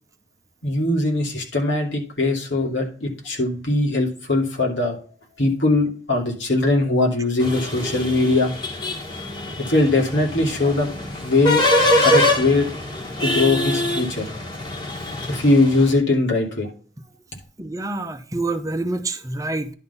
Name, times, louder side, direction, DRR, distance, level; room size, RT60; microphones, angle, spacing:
voice 1, 0.6-5.0 5.4-8.5 9.7-10.9 11.2-11.6 12.0-12.7 13.2-14.3 15.3-16.7, left 2 dB, 85° left, 2.6 m, -20 dB
sound 1, 7.4-15.9, left 1 dB, 25° left, 1.7 m, -24 dB
voice 2, 17.6-19.7, right 2 dB, 20° right, 0.7 m, -27 dB
10.5 x 4.0 x 5.5 m
head